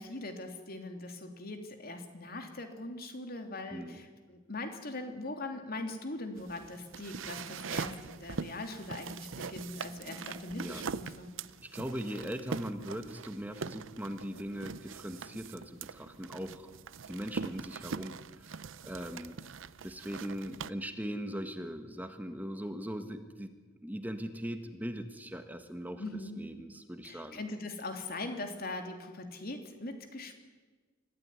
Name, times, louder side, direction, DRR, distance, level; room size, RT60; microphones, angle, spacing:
voice 1, 0.0-11.3 26.0-26.4 27.0-30.4, left 2 dB, 50° left, 5 dB, 3.1 m, -41 dB
voice 2, 3.7-4.0 10.6-10.9 11.6-16.7 17.1-19.5 19.8-23.5 23.8-27.4, equal, 10° right, 7 dB, 1.5 m, -40 dB
sound 1, 6.4-20.7, right 5 dB, 70° right, 0.7 m, -42 dB
25.5 x 15.5 x 9.8 m, 1.4 s
head